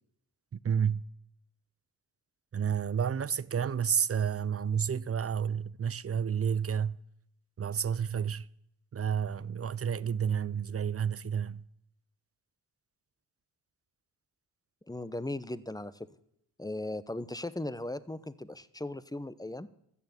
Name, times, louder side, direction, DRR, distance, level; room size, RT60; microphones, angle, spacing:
voice 1, 0.5-1.0 2.5-7.0 7.6-8.5 8.9-11.6, right 7 dB, 35° right, 0.6 m, -30 dB
voice 2, 14.9-16.1 16.6-19.7, left 2 dB, 10° left, 1.0 m, -37 dB
14.0 x 6.9 x 9.8 m
supercardioid pair, 40°, 42 cm